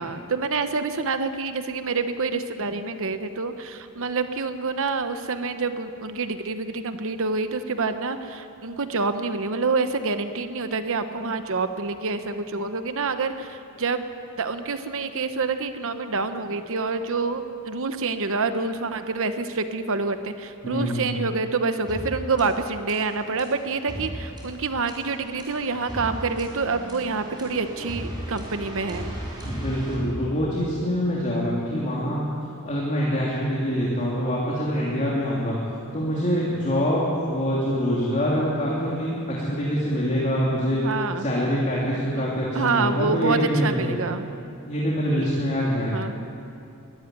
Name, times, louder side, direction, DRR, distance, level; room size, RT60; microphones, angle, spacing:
voice 1, 0.0-14.0 14.4-29.1 31.9-32.2 35.0-35.1 40.8-41.3 42.1-42.2 42.5-44.2 45.9-46.1, right 4 dB, 65° right, 9 dB, 1.0 m, -27 dB
voice 2, 20.6-21.2 29.4-32.3 32.6-35.6 35.9-40.8 41.2-44.0 44.6-46.0, equal, 35° left, -6 dB, 3.1 m, -25 dB
sound 1, 21.9-30.8, equal, 20° right, 4.8 m, -36 dB
22.0 x 13.5 x 9.2 m, 2.6 s
head